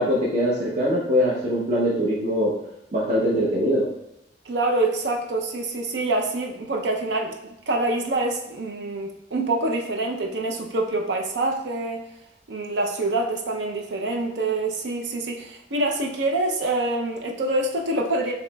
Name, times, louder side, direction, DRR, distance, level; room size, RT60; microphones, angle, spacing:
voice 1, 0.0-2.5 2.9-3.9, equal, 45° right, -6 dB, 0.8 m, -22 dB
voice 2, 4.5-12.0 12.5-18.3, right 2 dB, 85° right, 2 dB, 0.6 m, -26 dB
7.0 x 3.0 x 2.2 m, 0.84 s
head